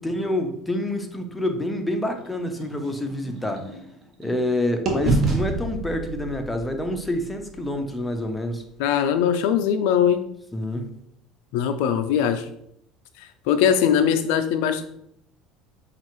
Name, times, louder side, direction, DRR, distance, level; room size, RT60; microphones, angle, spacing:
voice 1, 0.0-3.7 4.2-8.6 10.5-10.9, left 1 dB, 10° left, 5 dB, 0.6 m, -27 dB
sound 1, 2.2-4.5 4.9-8.8, right 2 dB, 45° right, 1.0 m, -29 dB
voice 2, 8.8-10.3 11.5-12.5 13.2-14.8, left 8 dB, 75° left, 8 dB, 0.4 m, -21 dB
5.3 x 2.4 x 3.1 m, 0.72 s
supercardioid pair, 100°, 0 cm